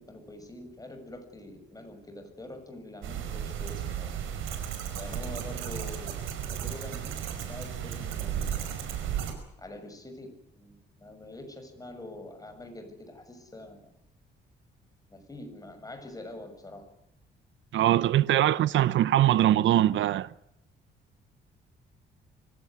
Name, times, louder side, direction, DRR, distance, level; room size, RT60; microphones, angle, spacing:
voice 1, 0.0-4.1 4.9-6.1 6.5-8.8 9.6-13.8 15.1-16.8 18.3-18.6, left 1 dB, 20° left, 6.7 m, -45 dB
sound 1, 3.0-9.3, right 9 dB, 90° right, 5.2 m, -34 dB
voice 2, 17.7-20.3, right 13 dB, 75° right, 0.8 m, -22 dB
24.5 x 17.0 x 9.7 m
cardioid pair, 90°, 20 cm